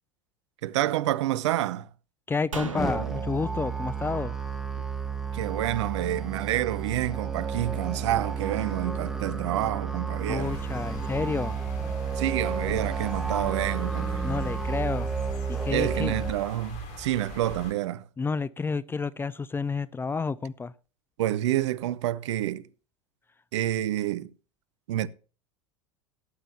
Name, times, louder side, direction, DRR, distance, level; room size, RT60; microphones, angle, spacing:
voice 1, 0.6-1.9 5.3-10.6 12.2-14.2 15.7-18.1 21.2-22.7 23.5-24.3 24.9-25.1, right 13 dB, 65° right, 0.7 m, -28 dB
voice 2, 2.3-4.3 10.3-11.6 14.2-15.1 15.5-16.1 18.2-20.7, left 4 dB, 15° left, 0.5 m, -30 dB
sound 1, 2.5-5.9 6.2-6.3, right 4 dB, 85° right, 1.3 m, -40 dB
Musical instrument, 2.8-16.3, right 5 dB, ahead, 1.6 m, -31 dB
sound 2, 10.4-17.7, left 2 dB, 50° left, 3.6 m, -41 dB
17.5 x 8.9 x 2.9 m
figure-of-eight pair, 85°, 16 cm